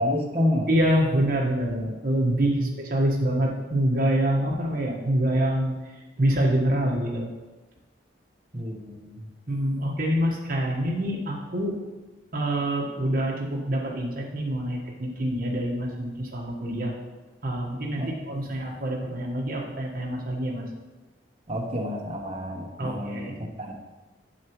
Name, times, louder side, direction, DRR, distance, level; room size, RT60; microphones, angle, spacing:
voice 1, 0.0-0.7 2.6-2.7 8.5-9.2 18.0-18.1 21.5-23.3 23.6-23.7, left 1 dB, 35° right, 0 dB, 1.0 m, -28 dB
voice 2, 0.7-5.7 6.2-7.3 9.5-11.8 12.3-16.9 17.4-20.6 22.8-23.3, right 1 dB, 55° right, -1 dB, 1.3 m, -26 dB
8.0 x 7.1 x 3.0 m, 1.2 s
head